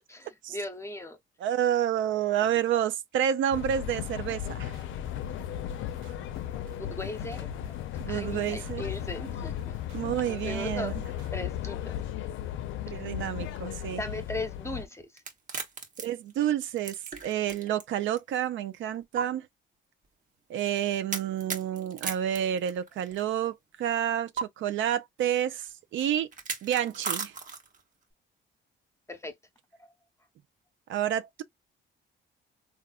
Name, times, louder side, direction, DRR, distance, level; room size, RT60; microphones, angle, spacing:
voice 1, 0.1-1.2 6.5-7.5 8.1-9.8 10.3-10.9 11.3-12.0 13.6-15.1 29.1-29.3 29.8-29.9, left 2 dB, 15° left, 0.8 m, -38 dB
voice 2, 1.4-4.7 8.0-8.9 9.9-10.9 12.9-14.0 16.0-19.5 20.5-26.3 26.6-27.3 30.9-31.4, right 10 dB, 75° right, 0.5 m, -29 dB
sound 1, 3.5-14.9, left 11 dB, 80° left, 0.5 m, -36 dB
sound 2, 4.7-11.5, right 2 dB, 90° right, 1.1 m, -52 dB
sound 3, 15.2-17.8 18.2-18.3 19.2-19.3 21.1-23.2 24.4-24.5 26.3-27.8, right 5 dB, 40° right, 1.0 m, -35 dB
3.5 x 2.4 x 2.3 m
cardioid pair, 90°, 20 cm